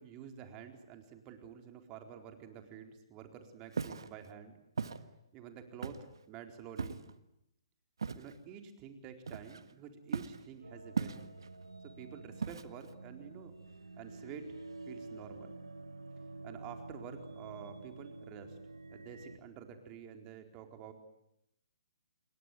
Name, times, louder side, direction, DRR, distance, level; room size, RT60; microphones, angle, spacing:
voice 1, 0.0-4.6 5.3-6.0 6.3-7.1 8.1-11.3 11.8-13.5 14.0-14.5 14.9-15.5 16.4-18.6 18.9-20.9, right 8 dB, 30° right, 5 dB, 4.3 m, -49 dB
Walk footsteps, 3.7-4.1 4.8-5.0 5.8-6.2 6.8-7.1 8.0-8.3 9.3-9.7 10.1-10.4 11.0-11.5 12.4-12.9, right 5 dB, 75° right, 1.6 m, -37 dB
sound 1, 10.6-19.4, right 2 dB, 90° right, 1.9 m, -49 dB
28.0 x 22.5 x 9.4 m, 0.82 s
figure-of-eight pair, 130°, 2 cm